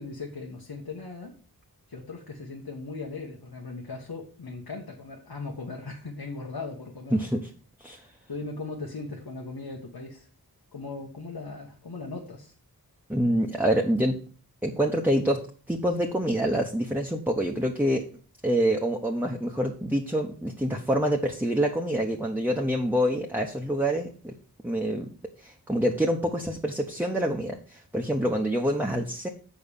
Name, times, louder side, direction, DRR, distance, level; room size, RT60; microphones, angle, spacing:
voice 1, 0.0-1.3 1.9-7.2 8.3-10.3 10.7-12.5, left 3 dB, 85° left, -1 dB, 1.4 m, -38 dB
voice 2, 7.1-7.4 7.8-8.0 13.1-14.2 14.6-18.0 18.4-24.3 24.6-25.1 25.4-29.3, equal, 5° right, 1 dB, 1.0 m, -26 dB
7.1 x 5.2 x 7.0 m, 0.40 s
wide cardioid pair, 65°, 37 cm